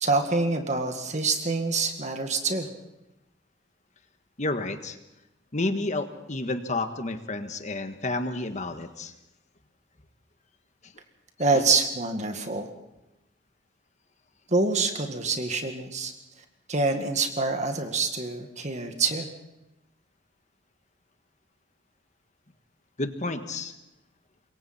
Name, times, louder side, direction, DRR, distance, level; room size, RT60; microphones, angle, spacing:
voice 1, 0.0-2.7 11.4-12.7 14.5-16.1 16.7-19.3, right 3 dB, 40° right, 5 dB, 1.9 m, -26 dB
voice 2, 4.4-5.0 5.5-9.1 10.8-10.9 11.5-11.6 23.0-23.7, left 2 dB, 40° left, 8 dB, 1.5 m, -30 dB
26.5 x 22.5 x 4.4 m, 0.94 s
head